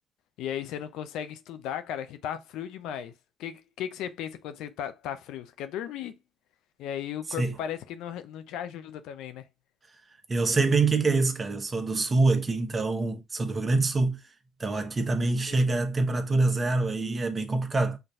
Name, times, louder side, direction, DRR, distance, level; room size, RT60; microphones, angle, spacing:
voice 1, 0.4-3.1 3.4-6.2 6.8-9.5 15.5-15.6, left 10 dB, 80° left, 0.5 m, -36 dB
voice 2, 10.3-14.2 14.6-18.0, right 3 dB, 30° right, 0.9 m, -25 dB
5.8 x 2.6 x 2.4 m
cardioid pair, 80°, 0 cm